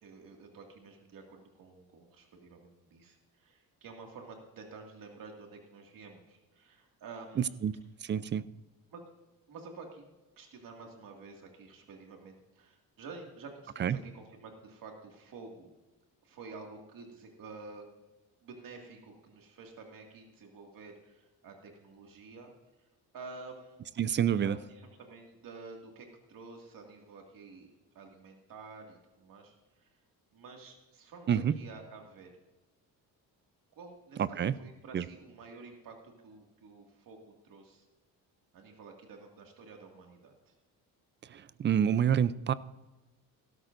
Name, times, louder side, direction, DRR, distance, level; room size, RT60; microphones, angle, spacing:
voice 1, 0.0-7.6 8.9-9.0 9.5-10.1 10.4-15.7 16.2-17.9 18.4-22.5 23.1-23.8 24.3-29.9 30.3-32.3 33.7-37.8 38.5-40.5, right 4 dB, 60° right, 2 dB, 2.1 m, -50 dB
voice 2, 7.4-7.7 8.0-8.4 13.8-14.0 24.0-24.6 31.3-31.6 34.2-34.5 34.9-35.1 41.3-42.5, right 9 dB, 30° right, 17 dB, 0.4 m, -28 dB
17.0 x 13.0 x 2.6 m, 1.1 s
cardioid pair, 130°, 37 cm